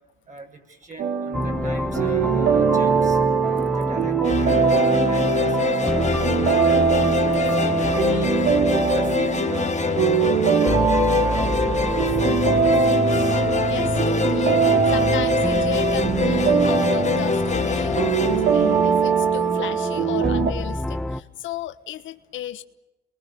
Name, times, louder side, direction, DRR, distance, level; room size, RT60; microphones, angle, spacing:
voice 1, 0.3-3.2 3.6-6.9 7.3-8.4 8.7-11.5 11.9-13.4, right 3 dB, 40° right, 3 dB, 7.0 m, -40 dB
sound 1, 1.0-20.5, right 6 dB, 75° right, 2.9 m, -22 dB
sound 2, 1.3-21.2, left 1 dB, 5° left, 1.1 m, -28 dB
sound 3, 4.2-19.5, left 5 dB, 35° left, 1.7 m, -25 dB
voice 2, 13.6-14.6 14.8-22.6, left 12 dB, 80° left, 10 dB, 1.4 m, -34 dB
30.0 x 22.5 x 7.2 m, 1.0 s
cardioid pair, 90°, 20 cm